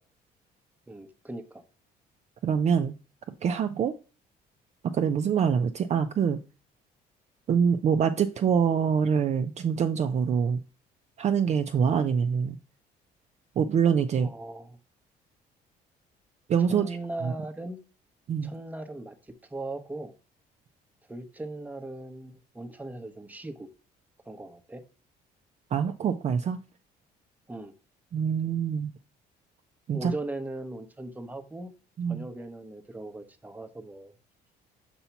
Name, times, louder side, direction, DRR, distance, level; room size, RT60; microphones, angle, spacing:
voice 1, 0.9-1.6 14.2-14.8 16.7-17.8 18.4-20.1 21.1-23.7 24.2-24.8 27.5-27.7 29.9-31.7 32.1-34.1, right 2 dB, 10° right, 0.8 m, -38 dB
voice 2, 2.4-2.9 3.4-3.9 4.9-6.4 7.5-10.6 11.2-12.6 13.6-14.3 16.5-17.0 17.2-17.3 18.3-18.5 25.7-26.6 28.1-28.9 29.9-30.1 32.0-32.2, right 7 dB, 40° right, 0.5 m, -25 dB
7.0 x 2.8 x 5.6 m
cardioid pair, 110°, 17 cm